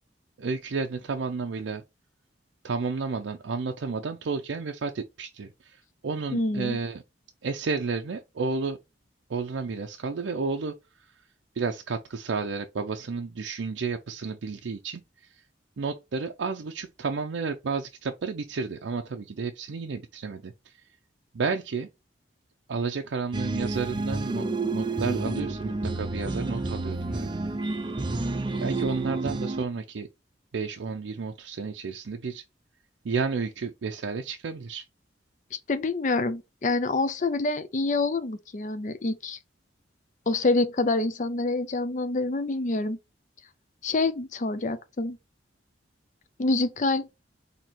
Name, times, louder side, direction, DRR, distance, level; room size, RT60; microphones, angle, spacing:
voice 1, 0.4-1.8 2.6-5.8 6.0-7.0 7.4-8.8 9.3-10.7 11.6-15.0 15.8-20.8 21.3-21.9 22.7-24.5 24.7-27.4 28.6-30.1 30.5-32.4 33.0-34.8, right 4 dB, 85° right, 0.5 m, -31 dB
voice 2, 6.3-6.8 25.0-25.4 35.5-39.4 40.3-43.0 43.8-45.2 46.4-47.1, left 3 dB, 40° left, 0.5 m, -27 dB
sound 1, 23.3-29.7, right 2 dB, 25° right, 0.5 m, -30 dB
4.3 x 2.8 x 4.3 m
head